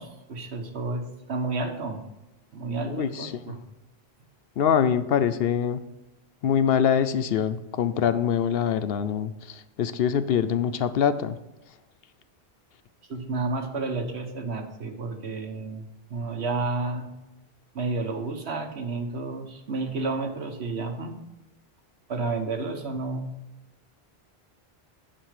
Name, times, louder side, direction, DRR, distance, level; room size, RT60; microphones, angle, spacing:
voice 1, 0.0-2.0 2.5-3.6 13.1-15.8 16.1-17.1 17.7-21.2 22.1-23.3, right 3 dB, 80° right, 5 dB, 1.4 m, -31 dB
voice 2, 2.9-3.3 4.6-5.8 6.4-9.3 9.8-11.4, left 8 dB, 70° left, 12 dB, 0.8 m, -24 dB
10.0 x 5.4 x 4.8 m, 1.0 s
omnidirectional pair, 1.1 m